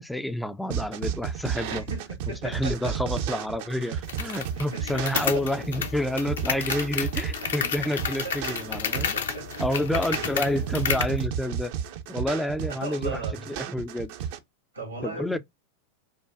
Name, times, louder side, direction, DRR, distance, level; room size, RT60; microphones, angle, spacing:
voice 1, 0.0-1.8 2.4-9.1 9.6-11.7 12.1-13.2 13.5-14.1 15.0-15.4, left 1 dB, 5° left, 0.3 m, -29 dB
sound 1, 0.7-14.4, right 8 dB, 50° right, 0.5 m, -33 dB
voice 2, 1.7-3.0 4.5-5.5 7.4-7.7 8.2-9.5 9.9-10.3 12.7-13.5 14.7-15.4, right 3 dB, 80° right, 1.8 m, -38 dB
sound 2, 4.1-11.2, left 7 dB, 65° left, 0.5 m, -31 dB
sound 3, 4.2-4.7 5.3-5.7 6.4-6.9 8.5-9.1 9.6-10.1 10.7-11.2, left 1 dB, 90° left, 1.7 m, -53 dB
5.4 x 2.2 x 2.4 m
figure-of-eight pair, 90°, 0 cm